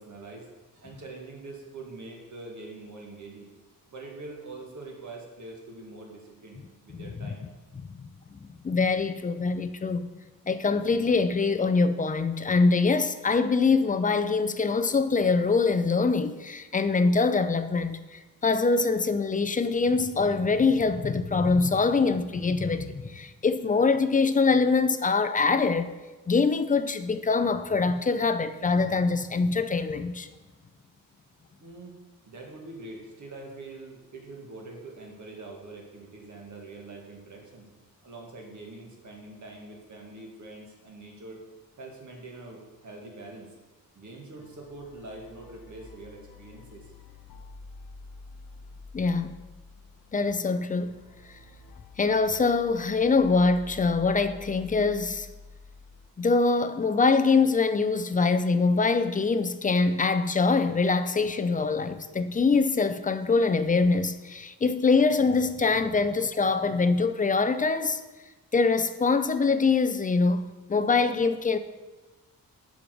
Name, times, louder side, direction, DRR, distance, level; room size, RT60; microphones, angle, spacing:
voice 1, 0.0-3.5 3.9-7.4 31.6-32.0 32.3-37.7 38.0-41.4 41.8-43.6 44.0-46.9, right 2 dB, 55° right, 1.8 m, -44 dB
voice 2, 6.9-7.3 8.0-8.4 8.6-10.1 10.5-25.9 26.3-30.3 48.9-49.4 50.1-51.0 52.0-55.3 56.2-68.0 68.5-71.6, left 4 dB, 25° left, 0.4 m, -24 dB
sound 1, 44.4-56.1, left 3 dB, 80° left, 0.8 m, -48 dB
6.9 x 5.0 x 6.0 m
wide cardioid pair, 120°, 35 cm